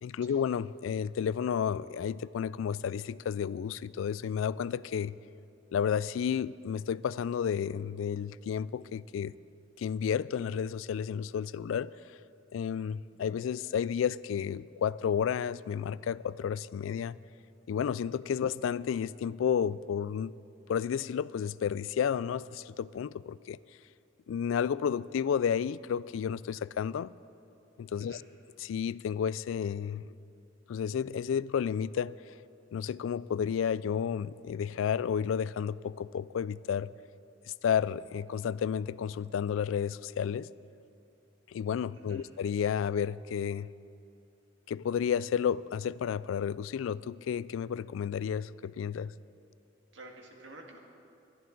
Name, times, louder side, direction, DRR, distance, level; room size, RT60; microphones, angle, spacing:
voice 1, 0.0-5.1 5.7-9.3 9.8-11.9 12.5-17.2 17.7-20.3 20.7-23.6 24.3-27.1 27.8-28.2 28.6-30.0 30.7-32.1 32.7-36.9 37.6-40.5 41.5-43.7 44.7-49.1, left 7 dB, 90° left, 19 dB, 0.3 m, -31 dB
voice 2, 41.9-42.3 49.9-50.8, right 2 dB, 70° right, 1 dB, 1.8 m, -50 dB
22.0 x 11.5 x 3.9 m, 2.6 s
head